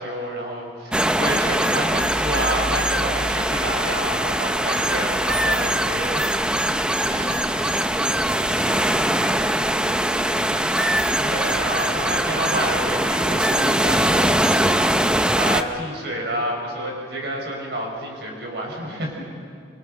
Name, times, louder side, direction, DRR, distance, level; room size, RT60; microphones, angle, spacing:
voice 1, 0.0-6.7 11.2-15.1 15.4-19.2, right 1 dB, 65° right, -1 dB, 6.0 m, -29 dB
sound 1, 0.9-15.6, right 1 dB, 5° right, 0.7 m, -22 dB
voice 2, 7.0-10.5, equal, 40° right, -2 dB, 6.7 m, -40 dB
25.5 x 25.0 x 6.7 m, 2.3 s
head